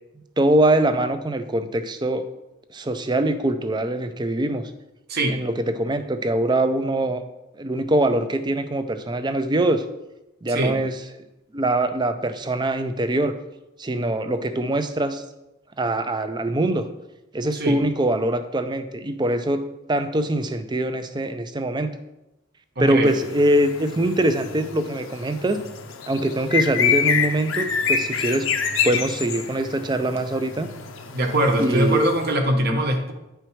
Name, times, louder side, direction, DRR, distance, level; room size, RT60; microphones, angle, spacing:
voice 1, 0.4-2.3 2.7-4.7 5.3-7.2 7.6-9.8 10.4-10.9 11.5-13.3 13.8-15.2 15.8-16.9 17.3-22.0 22.8-25.7 26.1-28.5 28.8-30.7 31.6-32.0, right 1 dB, 20° right, 9 dB, 0.5 m, -23 dB
voice 2, 10.5-10.8 17.5-17.8 22.8-23.1 31.1-33.1, right 1 dB, 50° right, 3 dB, 1.1 m, -22 dB
sound 1, 23.1-32.3, left 6 dB, 75° left, 0.7 m, -27 dB
9.9 x 4.6 x 4.6 m, 0.93 s
head